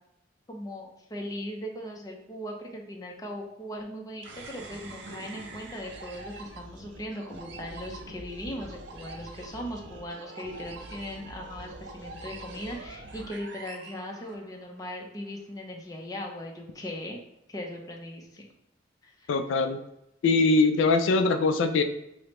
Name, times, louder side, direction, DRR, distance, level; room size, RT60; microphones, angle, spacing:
voice 1, 0.5-17.2 17.5-18.5 19.0-19.3, left 1 dB, 20° left, 0 dB, 0.5 m, -39 dB
sound 1, 4.2-14.8, right 2 dB, 65° right, 0.5 m, -44 dB
voice 2, 19.3-19.8 20.2-21.8, left 3 dB, 80° left, 7 dB, 0.3 m, -22 dB
4.8 x 2.0 x 3.0 m, 0.86 s
head